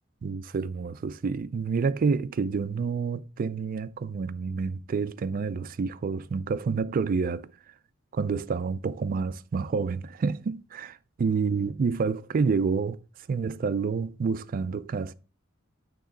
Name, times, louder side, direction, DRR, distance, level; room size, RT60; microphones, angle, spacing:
voice 1, 0.2-7.5 8.1-13.0 13.3-15.1, right 5 dB, 45° right, 0.3 m, -28 dB
8.7 x 3.0 x 3.8 m
head